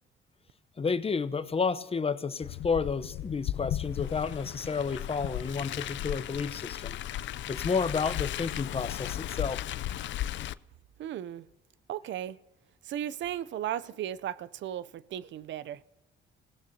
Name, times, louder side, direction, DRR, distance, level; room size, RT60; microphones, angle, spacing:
voice 1, 0.8-7.0 7.5-9.6, left 5 dB, 30° left, 0.8 m, -31 dB
Car, 2.4-10.5, left 12 dB, 70° left, 0.5 m, -35 dB
voice 2, 11.0-11.5 11.9-12.4 12.8-15.8, right 11 dB, 70° right, 0.5 m, -35 dB
29.0 x 17.0 x 2.8 m
cardioid pair, 90°, 20 cm